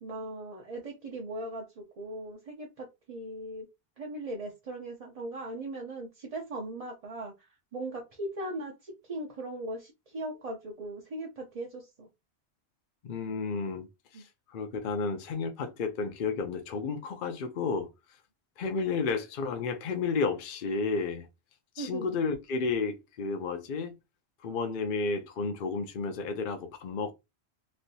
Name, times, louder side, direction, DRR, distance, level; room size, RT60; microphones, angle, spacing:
voice 1, 0.0-3.7 4.0-12.1 14.1-14.2 21.8-22.0, right 1 dB, 40° right, 0.6 m, -39 dB
voice 2, 13.0-13.9 14.1-17.9 18.6-21.3 21.8-23.9 24.4-27.1, left 4 dB, 55° left, 0.7 m, -32 dB
3.2 x 2.7 x 2.6 m
omnidirectional pair, 1.1 m